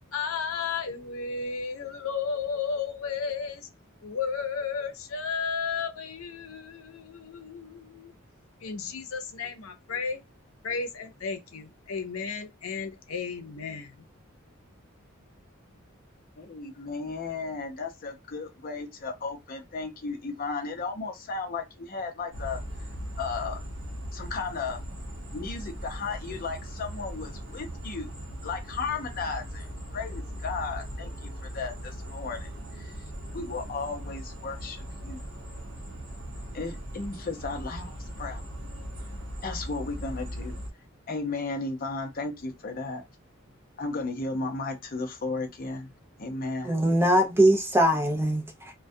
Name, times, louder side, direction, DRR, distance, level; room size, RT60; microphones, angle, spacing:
voice 1, 0.1-3.7 4.0-8.1 8.6-10.2 10.6-14.0, left 5 dB, 90° left, 0.6 m, -33 dB
voice 2, 16.4-22.6 23.2-23.6 24.1-24.8 25.3-28.1 28.4-33.1 33.3-35.2 36.5-38.4 39.4-40.6 41.1-43.0 43.8-45.9 46.2-46.8, left 4 dB, 45° left, 0.6 m, -35 dB
sound 1, 22.3-40.7, equal, 65° right, 0.8 m, -39 dB
voice 3, 46.6-48.7, right 1 dB, 10° right, 0.4 m, -22 dB
2.3 x 2.1 x 2.6 m
head